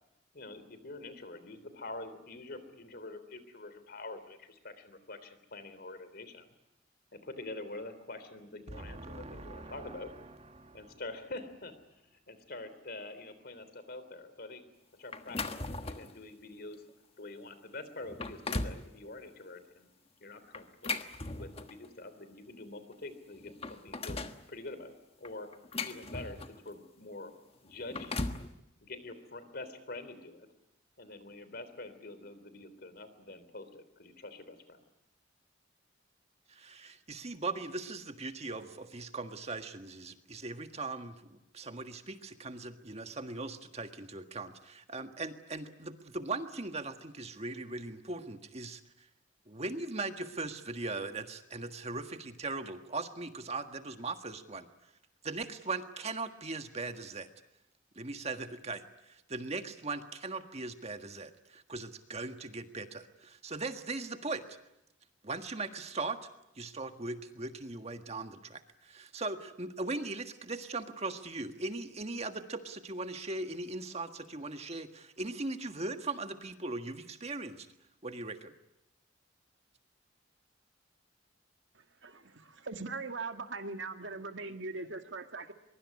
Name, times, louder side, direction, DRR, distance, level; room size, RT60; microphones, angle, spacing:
voice 1, 0.3-6.4 7.1-10.1 10.7-11.7 12.1-14.6 15.0-15.4 15.8-16.8 17.2-19.9 20.2-21.0 21.4-24.2 24.5-24.9 25.2-25.5 25.8-27.3 27.6-28.2 28.8-30.5 31.0-34.8, left 2 dB, 55° left, 12 dB, 3.4 m, -46 dB
voice 2, 8.7-11.0 36.5-49.1 49.5-54.7 55.2-57.3 57.9-64.6 65.2-66.2 66.5-77.7 78.0-78.5, right 3 dB, 35° right, 7 dB, 1.6 m, -39 dB
sound 1, 15.1-16.2 16.7-16.9 17.5-17.6 18.0-18.8 20.5-21.9 22.9-23.0 23.3-24.4 25.2-26.7 27.7-28.5, left 3 dB, 30° left, 1.4 m, -38 dB
voice 3, 81.7-85.5, right 3 dB, 80° right, 6 dB, 2.0 m, -41 dB
23.0 x 23.0 x 9.7 m, 0.88 s
head